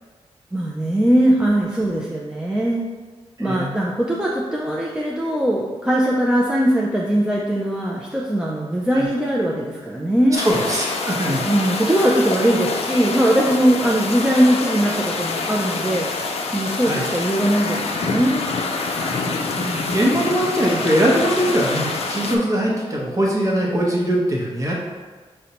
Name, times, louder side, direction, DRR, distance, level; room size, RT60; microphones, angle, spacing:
voice 1, 0.5-2.9 3.4-10.4 11.4-18.5 19.6-19.9, right 1 dB, 10° right, -3 dB, 0.3 m, -20 dB
voice 2, 3.4-3.7 8.9-9.1 10.3-11.4 16.8-17.1 19.0-19.2 19.9-24.7, equal, 30° right, -3 dB, 0.7 m, -21 dB
sound 1, 10.3-22.4, left 3 dB, 70° left, 0.4 m, -26 dB
5.0 x 2.1 x 2.8 m, 1.4 s
wide cardioid pair, 125°, 11 cm